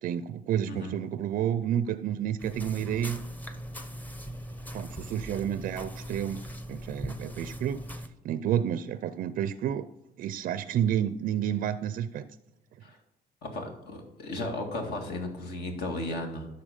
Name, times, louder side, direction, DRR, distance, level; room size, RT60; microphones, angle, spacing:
voice 1, 0.0-3.2 4.7-6.4 6.7-7.8 8.2-9.9 10.2-12.3, right 10 dB, 55° right, 14 dB, 0.4 m, -30 dB
sound 1, 2.4-8.1, equal, 10° left, 0.8 m, -40 dB
voice 2, 13.4-16.5, left 2 dB, 70° left, 2 dB, 2.0 m, -35 dB
11.5 x 4.1 x 5.2 m, 0.94 s
cardioid pair, 110°, 17 cm